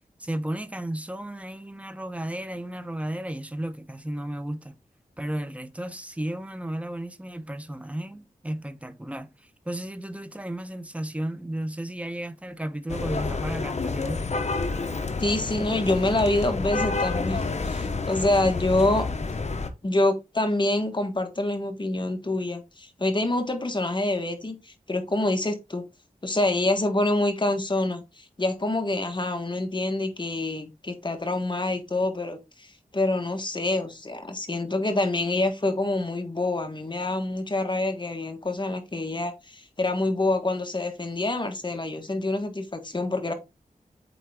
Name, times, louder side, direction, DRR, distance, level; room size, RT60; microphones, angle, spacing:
voice 1, 0.2-4.7 5.2-14.3, right 1 dB, 10° right, 0.8 m, -34 dB
sound 1, 12.9-19.7, left 3 dB, 50° left, 0.9 m, -29 dB
voice 2, 15.2-19.0 19.8-25.8 26.2-43.3, left 2 dB, 30° left, 1.5 m, -26 dB
8.5 x 3.7 x 3.6 m
wide cardioid pair, 85°, 15 cm